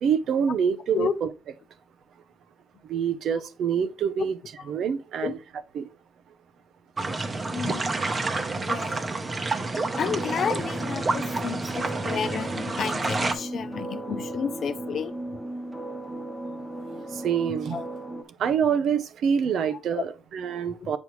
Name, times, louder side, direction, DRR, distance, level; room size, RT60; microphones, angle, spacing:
voice 1, 0.0-1.3 2.8-4.3 4.7-5.4 5.7-5.9 17.1-17.8 18.4-21.0, right 7 dB, 70° right, 0.7 m, -26 dB
sound 1, 7.0-13.3, right 3 dB, 30° right, 0.9 m, -29 dB
voice 2, 7.5-8.3 8.6-9.2 10.0-15.2 17.7-17.8 19.7-20.0 20.8-20.9, left 7 dB, 60° left, 0.7 m, -32 dB
sound 2, 9.9-18.2, right 1 dB, 5° right, 1.1 m, -35 dB
8.0 x 5.2 x 3.1 m
cardioid pair, 90°, 0 cm